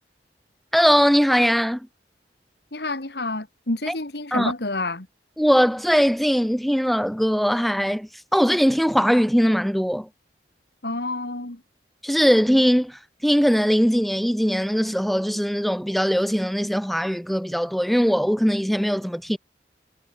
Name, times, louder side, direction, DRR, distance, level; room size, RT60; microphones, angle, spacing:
voice 1, 0.7-1.9 3.9-4.0 4.3-4.5 5.4-10.1 12.0-19.4, equal, ahead, 1.8 m, -20 dB
voice 2, 2.7-5.1 10.8-11.6, left 2 dB, 65° left, 2.4 m, -28 dB
head